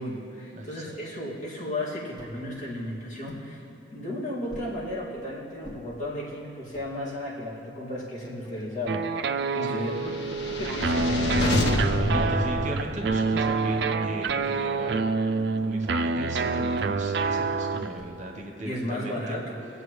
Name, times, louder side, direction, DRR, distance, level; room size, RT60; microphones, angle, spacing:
voice 1, 0.0-3.6 3.9-9.2 9.5-11.3 18.6-19.6, left 1 dB, 40° left, -7 dB, 2.4 m, -34 dB
voice 2, 0.6-1.0 9.6-9.8 12.1-15.0 15.6-19.4, right 1 dB, 40° right, 1 dB, 1.1 m, -37 dB
sound 1, 2.2-2.4 3.3-3.5 4.5-4.8 5.6-5.8 6.5-6.9 7.6-7.7 8.0-9.0 10.8-11.2 11.9-12.2 13.1-13.4 14.3-14.6 15.4-15.7 16.7-17.0 18.0-18.4, equal, 25° left, 1.7 m, -46 dB
sound 2, 8.9-18.0, right 3 dB, 65° right, 0.4 m, -27 dB
sound 3, 10.0-13.4, left 1 dB, 65° left, 0.9 m, -28 dB
22.5 x 7.9 x 3.2 m, 3.0 s
head